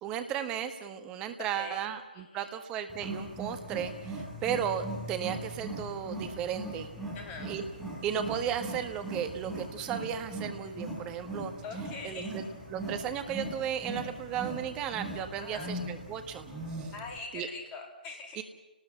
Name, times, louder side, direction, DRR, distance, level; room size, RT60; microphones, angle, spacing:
voice 1, 0.0-7.0 7.4-7.7 8.0-11.5 12.0-12.4 12.7-16.5 16.8-16.9 17.3-17.5 18.4-18.5, right 9 dB, 15° right, 8 dB, 1.5 m, -35 dB
voice 2, 2.1-2.5 7.1-7.5 11.6-12.4 15.3-15.7 16.9-18.4, left 4 dB, 20° left, 3 dB, 3.2 m, -43 dB
Wild animals, 2.9-17.2, right 1 dB, ahead, 5.2 m, -40 dB
30.0 x 19.5 x 5.8 m, 1.1 s
figure-of-eight pair, 145°, 5 cm